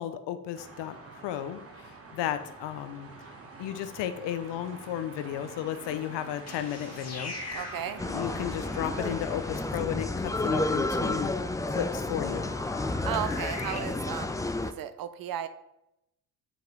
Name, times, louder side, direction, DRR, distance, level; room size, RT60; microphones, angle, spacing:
voice 1, 0.0-3.1 3.6-7.3 8.1-11.4 11.7-12.5, left 11 dB, 70° left, 9 dB, 0.7 m, -34 dB
sound 1, 0.5-9.7, right 3 dB, 30° right, 1.3 m, -46 dB
sound 2, 6.3-13.8, left 2 dB, 35° left, 1.5 m, -43 dB
voice 2, 7.5-8.0 13.0-15.5, right 10 dB, 50° right, 11 dB, 0.7 m, -35 dB
sound 3, 8.0-14.7, left 2 dB, 10° left, 0.4 m, -31 dB
8.0 x 3.0 x 5.2 m, 0.84 s
supercardioid pair, 65°, 44 cm